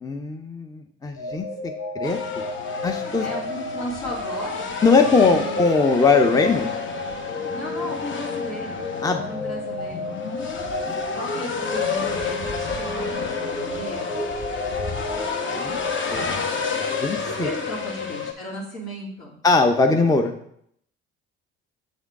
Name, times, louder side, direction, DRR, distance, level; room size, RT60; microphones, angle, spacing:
voice 1, 0.0-2.4 2.8-3.3 4.8-6.7 9.0-9.2 15.5-15.8 16.1-16.3 16.7-17.5 19.4-20.3, left 4 dB, 10° left, 5 dB, 0.6 m, -21 dB
sound 1, 1.2-17.8, left 2 dB, 90° left, 1.8 m, -33 dB
sound 2, 2.0-18.3, left 5 dB, 35° left, 0.8 m, -30 dB
voice 2, 3.2-4.7 5.2-5.6 7.5-10.2 11.2-14.2 17.3-19.4, equal, 65° left, -4 dB, 2.5 m, -35 dB
7.3 x 3.6 x 3.6 m, 0.69 s
hypercardioid pair, 55°, 33 cm